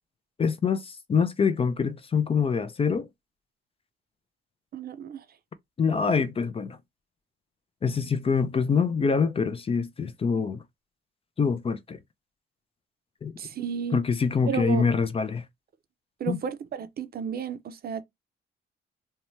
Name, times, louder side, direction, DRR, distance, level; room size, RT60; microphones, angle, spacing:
voice 1, 0.4-3.1 5.8-6.8 7.8-10.6 11.4-12.0 13.2-13.3 13.9-15.4 16.3-16.4, left 5 dB, 30° left, 0.4 m, -25 dB
voice 2, 4.7-5.2 13.4-14.0 14.5-14.9 16.2-18.0, right 7 dB, 50° right, 0.5 m, -32 dB
2.7 x 2.2 x 3.0 m
cardioid pair, 90°, 20 cm